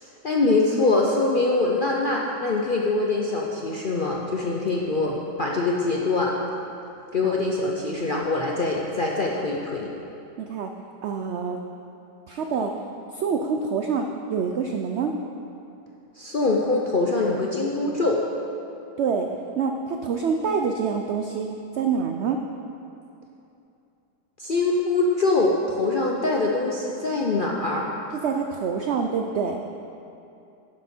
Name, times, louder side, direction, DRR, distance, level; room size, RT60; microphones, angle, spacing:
voice 1, 0.0-6.3 7.1-9.9 16.2-18.2 24.4-27.9, left 2 dB, 55° left, -2 dB, 0.5 m, -23 dB
voice 2, 10.4-10.7 11.0-11.6 12.3-12.7 13.1-15.1 19.0-19.3 19.6-21.5 21.7-22.4 28.1-29.6, right 5 dB, 85° right, 4 dB, 0.6 m, -26 dB
11.0 x 7.7 x 4.3 m, 2.8 s
omnidirectional pair, 1.8 m